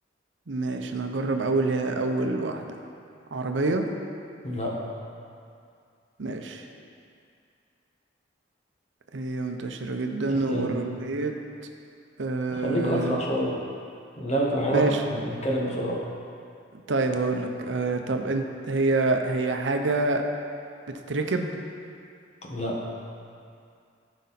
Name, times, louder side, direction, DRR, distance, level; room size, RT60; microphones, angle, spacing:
voice 1, 0.5-2.7 3.3-3.9 6.2-6.7 9.1-11.3 12.2-13.2 14.7-15.0 16.9-20.2 21.1-21.6, right 3 dB, 80° right, 5 dB, 0.7 m, -27 dB
voice 2, 4.4-4.8 10.3-10.8 12.5-13.6 14.2-16.0 22.4-22.8, equal, 35° left, -2 dB, 1.4 m, -27 dB
14.5 x 5.2 x 4.1 m, 2.4 s
head